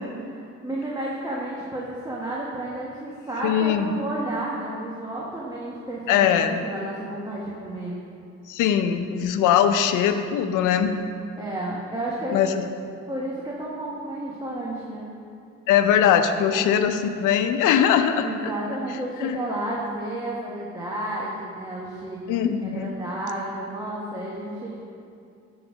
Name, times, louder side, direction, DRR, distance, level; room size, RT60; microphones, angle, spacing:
voice 1, 0.3-8.0 11.4-12.4 13.1-15.1 16.5-16.8 18.2-24.8, right 1 dB, 15° right, -5 dB, 1.2 m, -32 dB
voice 2, 3.4-4.0 6.1-6.6 8.5-10.9 12.3-12.7 15.7-18.3 19.2-19.4 22.3-22.9, left 9 dB, 90° left, 8 dB, 0.6 m, -21 dB
9.7 x 4.0 x 6.2 m, 2.5 s
cardioid pair, 90°, 30 cm